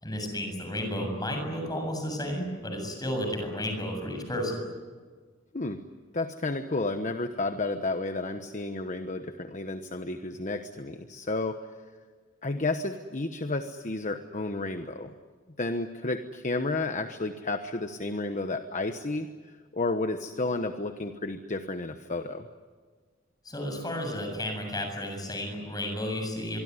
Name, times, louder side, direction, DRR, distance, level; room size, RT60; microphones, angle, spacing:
voice 1, 0.0-4.7 23.4-26.6, equal, 20° left, 4 dB, 7.4 m, -32 dB
voice 2, 6.1-11.7 12.4-15.1 15.6-19.3 19.7-22.5, left 2 dB, 40° left, 8 dB, 1.1 m, -31 dB
25.5 x 24.0 x 9.7 m, 1.5 s
head